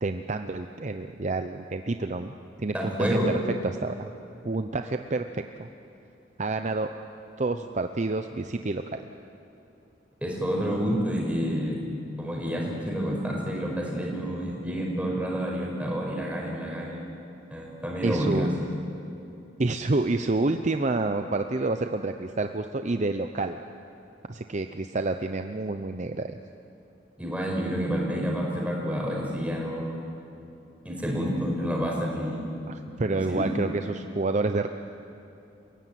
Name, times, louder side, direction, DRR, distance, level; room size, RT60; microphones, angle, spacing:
voice 1, 0.0-2.3 2.6-3.2 3.6-4.1 4.4-5.7 6.4-6.9 7.4-9.0 18.0-18.5 19.6-23.6 24.3-26.4 32.7-34.7, right 2 dB, 40° right, 7 dB, 0.7 m, -28 dB
voice 2, 2.7-3.3 10.2-11.8 12.2-17.1 17.5-18.5 27.2-30.1 30.8-32.5 33.0-33.5, equal, 5° right, -2 dB, 5.5 m, -29 dB
29.0 x 16.0 x 9.3 m, 2.8 s
head